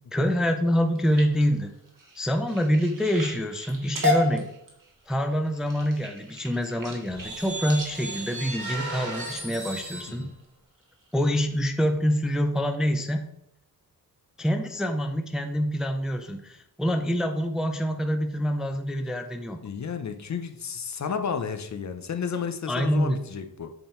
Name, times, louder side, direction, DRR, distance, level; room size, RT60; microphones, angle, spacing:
voice 1, 0.1-1.7 2.2-4.4 5.1-10.3 11.1-13.3 14.4-19.6 22.7-23.2, equal, ahead, 6 dB, 0.4 m, -26 dB
sound 1, 0.8-9.5 10.1-10.4 10.8-11.2 11.6-11.7 12.1-12.2, left 2 dB, 60° right, 1.7 m, -33 dB
sound 2, 7.1-10.2, right 2 dB, 90° right, 2.2 m, -35 dB
voice 2, 19.6-23.7, left 6 dB, 50° left, 8 dB, 0.5 m, -32 dB
7.8 x 3.7 x 4.3 m, 0.80 s
wide cardioid pair, 170°, 37 cm